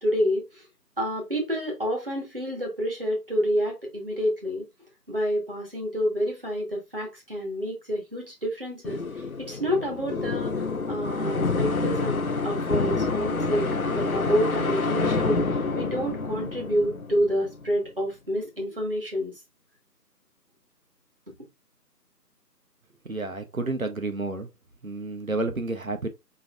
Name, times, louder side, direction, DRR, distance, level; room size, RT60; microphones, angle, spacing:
voice 1, 0.0-0.6 1.0-4.6 5.1-19.4 21.3-21.4, equal, 35° right, 1.4 m, -28 dB
sound 1, 8.8-17.7, left 3 dB, 60° left, 0.5 m, -28 dB
voice 2, 23.0-24.5 24.8-26.1, right 2 dB, 55° right, 1.0 m, -30 dB
5.4 x 3.1 x 2.4 m
figure-of-eight pair, 175°, 50 cm